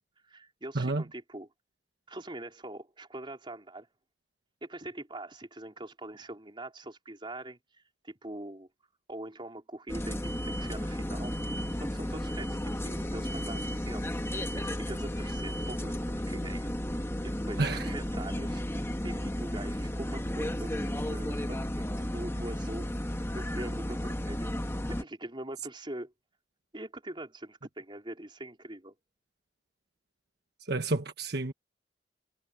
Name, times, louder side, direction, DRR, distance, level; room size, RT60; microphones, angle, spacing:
voice 1, 0.2-1.5 2.1-3.9 4.6-8.7 9.1-22.9 23.3-24.5 24.9-26.1 26.7-28.9, right 1 dB, 30° right, 4.2 m, -43 dB
sound 1, 9.9-25.0, equal, 15° left, 1.4 m, -33 dB
voice 2, 17.6-17.9 30.6-31.5, right 2 dB, 65° right, 1.4 m, -30 dB
head